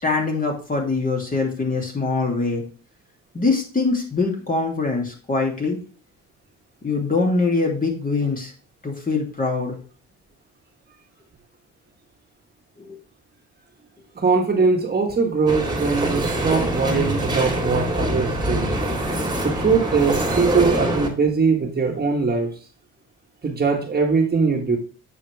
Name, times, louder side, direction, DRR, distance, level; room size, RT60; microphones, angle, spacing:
voice 1, 0.0-2.6 3.3-5.8 6.8-8.5 8.8-9.8 12.8-13.0, left 3 dB, 30° left, 0 dB, 2.6 m, -23 dB
voice 2, 14.1-18.7 19.4-22.5 23.4-24.8, right 4 dB, 30° right, 1 dB, 1.5 m, -21 dB
Mgreel piano synths and trains, 15.5-21.1, right 1 dB, 15° right, 2.0 m, -24 dB
8.4 x 4.9 x 3.3 m, 0.39 s
cardioid pair, 90°, 30 cm